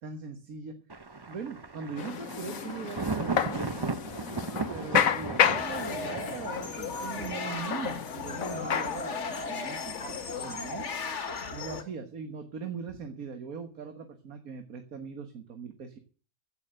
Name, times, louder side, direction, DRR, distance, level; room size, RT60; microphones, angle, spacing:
voice 1, 0.0-0.8 1.3-3.9 4.7-16.0, right 6 dB, 90° right, 7 dB, 1.9 m, -40 dB
Thunder, 0.9-7.3, right 3 dB, 25° right, 0.6 m, -36 dB
sound 1, 2.0-11.3, left 8 dB, 75° left, 1.4 m, -32 dB
sound 2, 5.4-11.8, left 4 dB, 55° left, 1.8 m, -36 dB
15.5 x 7.1 x 7.7 m, 0.39 s
omnidirectional pair, 1.4 m